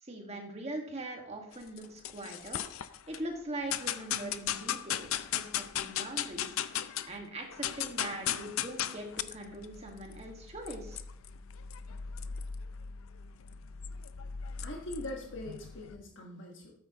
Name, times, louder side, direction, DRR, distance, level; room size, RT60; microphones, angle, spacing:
voice 1, 0.0-2.6 3.1-11.0, right 1 dB, 30° right, 2 dB, 1.7 m, -42 dB
sound 1, 1.5-3.2 3.7-7.2 7.4-16.0, left 10 dB, 85° left, 0.5 m, -37 dB
voice 2, 14.6-16.7, left 1 dB, 60° left, 0 dB, 1.4 m, -42 dB
13.0 x 8.7 x 3.0 m, 0.70 s
head